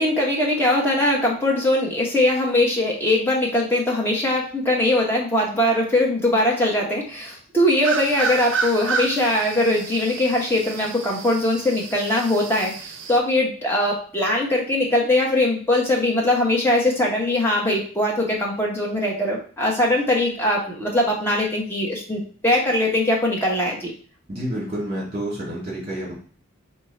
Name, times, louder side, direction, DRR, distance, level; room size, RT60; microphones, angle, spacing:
voice 1, 0.0-23.9, left 1 dB, 10° left, -3 dB, 1.0 m, -21 dB
sound 1, 7.8-13.2, right 5 dB, 55° right, 0.5 m, -30 dB
voice 2, 24.3-26.1, right 1 dB, 25° right, -5 dB, 2.0 m, -29 dB
4.5 x 2.4 x 4.2 m, 0.43 s
head